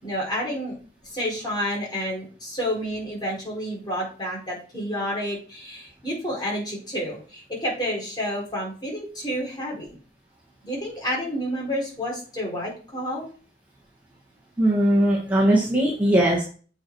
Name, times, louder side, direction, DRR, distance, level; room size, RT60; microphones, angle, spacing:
voice 1, 0.0-0.8 1.0-9.9 10.6-13.3, equal, 25° left, -3 dB, 4.9 m, -30 dB
voice 2, 14.6-16.4, right 1 dB, 10° right, -5 dB, 2.0 m, -19 dB
8.1 x 6.2 x 4.9 m, 0.40 s
head